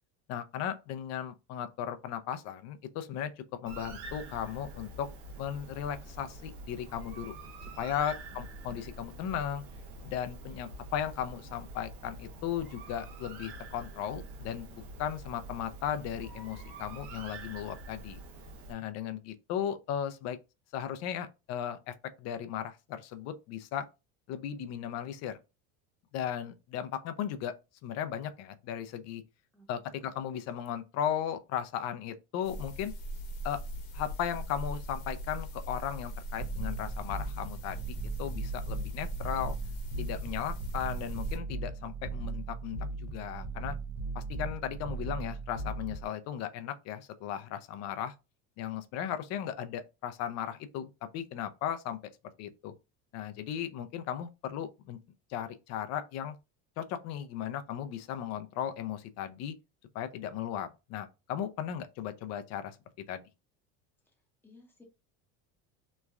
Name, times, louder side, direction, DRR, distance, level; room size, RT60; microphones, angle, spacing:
voice 1, 0.3-3.3 3.6-5.1 5.4-7.3 7.8-9.6 10.0-18.2 18.7-20.4 20.7-23.9 24.3-25.4 26.1-27.5 27.8-29.2 29.7-32.9 33.4-33.6 33.9-39.6 40.0-43.7 44.1-48.1 48.6-52.0 52.4-52.7 53.1-55.0 55.3-56.4 56.8-59.5 59.9-62.8 63.1-63.2, left 9 dB, 45° left, 0.4 m, -36 dB
Bird, 3.7-18.7, right 2 dB, 90° right, 0.9 m, -46 dB
voice 2, 8.2-8.9 29.5-29.7 64.1-64.2 64.4-64.8, left 1 dB, 5° left, 0.8 m, -59 dB
sound 1, 32.4-41.4, equal, 65° left, 1.0 m, -40 dB
sound 2, 36.4-46.1, right 3 dB, 60° right, 0.6 m, -38 dB
3.0 x 2.2 x 2.3 m
cardioid pair, 140°, 36 cm